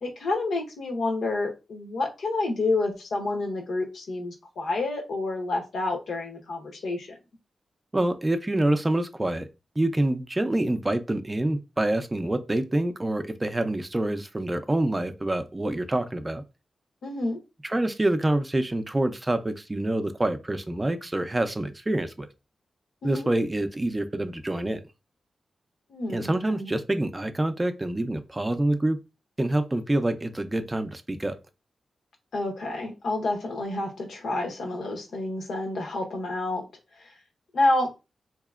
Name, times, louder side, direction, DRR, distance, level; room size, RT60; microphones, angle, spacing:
voice 1, 0.0-7.2 17.0-17.4 23.0-23.3 25.9-26.7 32.3-36.6 37.0-37.1 37.5-37.9, left 2 dB, 80° left, 1.0 m, -29 dB
voice 2, 7.9-9.5 9.8-16.4 17.6-22.3 23.0-24.8 26.1-29.0 29.4-31.3, right 1 dB, 20° right, 0.4 m, -26 dB
4.1 x 2.8 x 2.4 m
wide cardioid pair, 125°, 0 cm